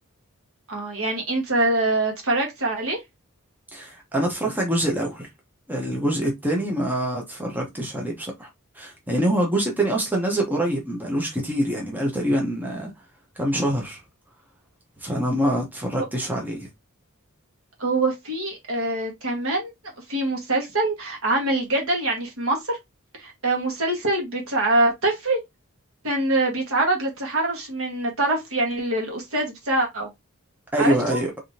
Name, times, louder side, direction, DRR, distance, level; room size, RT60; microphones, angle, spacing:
voice 1, 0.7-3.0 17.8-19.7 20.1-22.8 23.2-25.4 26.0-30.1 30.8-31.2, right 2 dB, 70° right, 1.7 m, -24 dB
voice 2, 3.7-5.3 5.7-8.5 8.7-12.9 13.4-14.0 15.0-16.7 30.7-31.3, right 1 dB, 10° right, 1.1 m, -25 dB
3.7 x 3.6 x 2.8 m
head